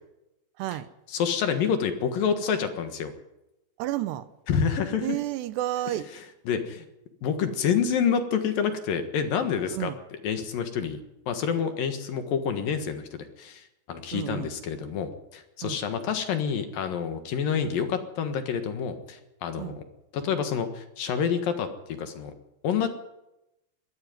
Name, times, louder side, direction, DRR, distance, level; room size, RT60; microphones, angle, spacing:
voice 1, 0.6-0.9 3.8-4.3 5.0-6.1 9.7-10.0 14.1-14.5 15.6-15.8 19.6-19.8, right 14 dB, 80° right, 3.0 m, -31 dB
voice 2, 1.1-3.1 4.5-5.1 6.5-6.9 7.2-11.0 11.3-19.8 20.1-21.7 22.0-22.3 22.6-22.9, left 7 dB, 65° left, 2.9 m, -28 dB
20.0 x 14.0 x 9.4 m
omnidirectional pair, 4.9 m